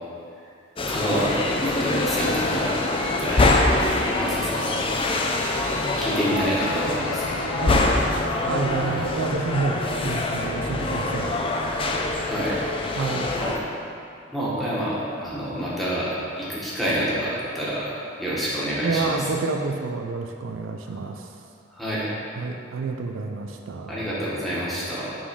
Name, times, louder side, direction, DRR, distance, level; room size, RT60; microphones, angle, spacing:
sound 1, 0.8-13.6, left 2 dB, 25° left, 0.4 m, -24 dB
voice 1, 0.9-3.5 4.2-4.9 6.0-7.7 8.8-9.0 12.3-12.6 13.3-13.6 14.3-19.2 20.9-21.0 21.7-22.0 23.9-25.2, equal, ahead, -9 dB, 1.4 m, -28 dB
Guitar, 6.6-14.2, left 3 dB, 85° left, 0.4 m, -37 dB
voice 2, 8.5-11.4 13.0-13.3 18.8-21.3 22.4-24.1, right 4 dB, 75° right, 4 dB, 0.4 m, -28 dB
6.1 x 3.9 x 4.7 m, 2.5 s
head